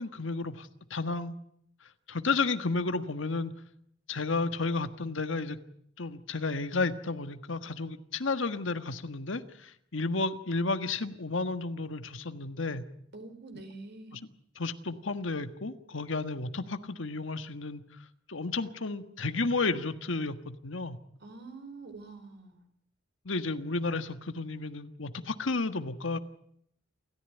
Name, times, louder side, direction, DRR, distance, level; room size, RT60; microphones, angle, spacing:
voice 1, 0.0-1.3 2.1-3.5 4.1-5.6 6.0-12.8 14.1-14.2 14.5-17.8 18.3-21.0 23.2-26.2, left 3 dB, 70° left, 10 dB, 1.5 m, -32 dB
voice 2, 13.1-14.2 21.2-22.6, right 3 dB, 60° right, 7 dB, 4.5 m, -46 dB
28.5 x 14.5 x 9.1 m, 0.70 s
head